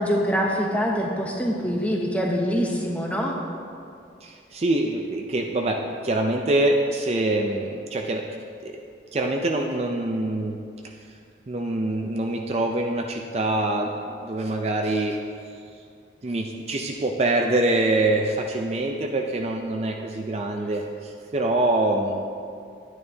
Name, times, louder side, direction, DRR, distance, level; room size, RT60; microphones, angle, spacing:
voice 1, 0.0-3.3, equal, 10° left, -1 dB, 0.8 m, -24 dB
voice 2, 4.2-8.2 8.6-8.7 9.1-10.6 10.8-10.9 11.5-15.2 16.2-22.3, right 2 dB, 35° right, 2 dB, 0.4 m, -25 dB
10.5 x 9.4 x 2.8 m, 2.4 s
head